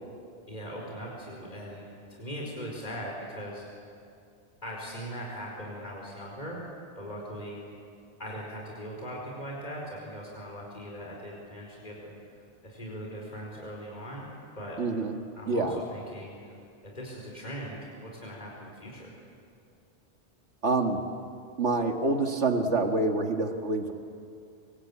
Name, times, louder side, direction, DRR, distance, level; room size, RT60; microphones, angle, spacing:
voice 1, 0.5-3.7 4.6-6.6 7.0-7.6 8.2-12.2 12.6-14.3 14.5-14.8 15.4-16.5 16.8-19.2, equal, 40° left, -2 dB, 5.0 m, -40 dB
voice 2, 14.8-15.2 15.5-15.8 20.6-21.0 21.6-23.9, right 3 dB, 80° right, 4 dB, 2.2 m, -26 dB
26.5 x 25.5 x 8.7 m, 2.4 s
omnidirectional pair, 1.2 m